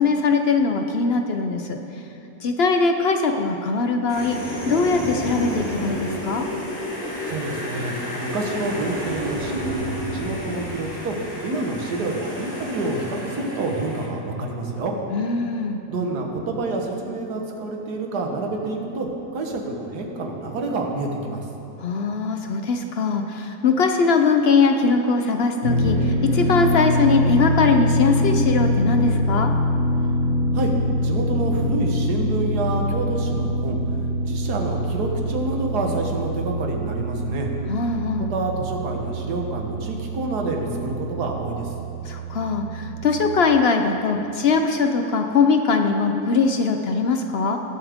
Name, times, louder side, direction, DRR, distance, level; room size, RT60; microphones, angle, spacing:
voice 1, 0.0-1.8 2.4-4.4 4.7-6.5 15.1-15.8 21.8-29.5 37.7-38.3 42.0-47.6, left 4 dB, 65° left, 5 dB, 0.6 m, -21 dB
sound 1, 4.1-14.1, equal, 25° left, 2.1 m, -31 dB
voice 2, 7.3-7.9 8.2-14.9 15.9-21.5 30.5-30.7 31.0-33.8 34.3-37.5 38.3-41.7, right 2 dB, 80° right, 2 dB, 1.7 m, -28 dB
Dist Chr E rock, 25.6-43.3, equal, 55° right, 1.7 m, -24 dB
19.5 x 7.3 x 3.5 m, 3.0 s
omnidirectional pair, 1.7 m